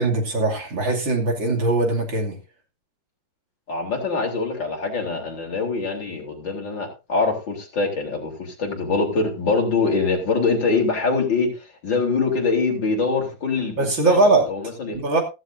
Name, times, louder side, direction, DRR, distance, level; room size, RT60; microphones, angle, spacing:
voice 1, 0.0-2.4 13.8-14.5 14.9-15.2, right 2 dB, 65° right, 0 dB, 3.4 m, -20 dB
voice 2, 3.7-15.0, left 4 dB, 60° left, 1 dB, 3.9 m, -24 dB
15.0 x 14.5 x 2.7 m, 0.29 s
omnidirectional pair, 2.3 m